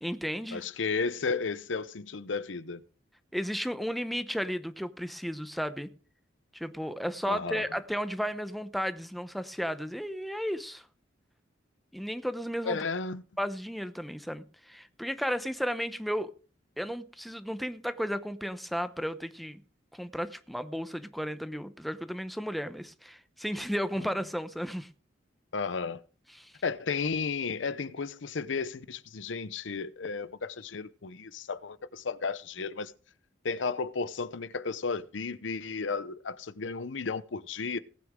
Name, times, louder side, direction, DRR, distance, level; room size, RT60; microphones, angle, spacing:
voice 1, 0.0-0.6 3.3-5.9 6.5-10.8 11.9-12.8 13.4-16.3 16.8-19.6 19.9-24.9 26.4-26.5, equal, ahead, 0.8 m, -34 dB
voice 2, 0.5-2.8 7.3-7.7 12.6-13.2 24.0-24.1 25.5-26.0 26.6-32.9 33.4-37.8, left 4 dB, 85° left, 0.7 m, -33 dB
18.5 x 9.5 x 3.7 m
head